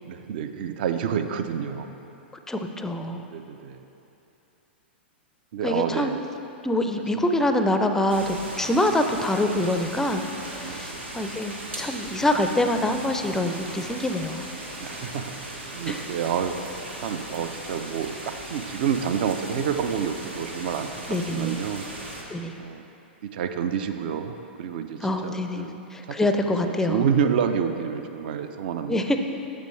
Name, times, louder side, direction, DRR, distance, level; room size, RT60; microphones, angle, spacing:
voice 1, 0.0-1.9 3.3-3.8 5.5-6.1 10.6-10.9 14.8-15.3 15.7-16.6 17.0-21.8 22.6-22.8 23.2-25.8 26.1-26.2 26.4-29.0, right 7 dB, 55° right, 8 dB, 0.5 m, -28 dB
voice 2, 2.5-3.2 5.6-6.1 6.6-14.4 15.9-16.0 21.1-21.6 22.3-22.5 25.0-27.1 28.9-29.2, left 1 dB, 5° left, 6 dB, 0.4 m, -25 dB
sound 1, 8.1-22.2, right 1 dB, 85° right, 1.1 m, -38 dB
8.2 x 6.8 x 3.2 m, 2.9 s
figure-of-eight pair, 105°, 6 cm